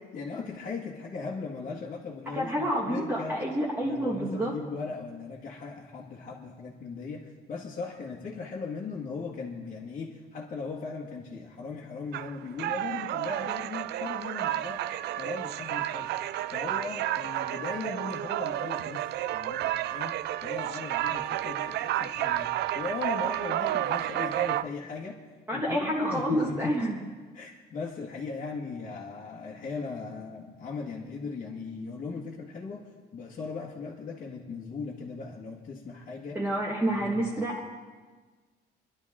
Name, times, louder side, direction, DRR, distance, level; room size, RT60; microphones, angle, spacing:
voice 1, 0.1-3.4 3.8-25.2 25.5-26.8 27.3-36.4 36.8-37.7, left 4 dB, 40° left, -4 dB, 1.6 m, -38 dB
voice 2, 2.3-4.5 25.5-27.0 36.3-37.7, right 1 dB, 10° right, -4 dB, 1.5 m, -28 dB
sound 1, 12.1-24.6, right 13 dB, 65° right, 0.4 m, -31 dB
26.0 x 11.5 x 3.7 m, 1.4 s
cardioid pair, 155°, 19 cm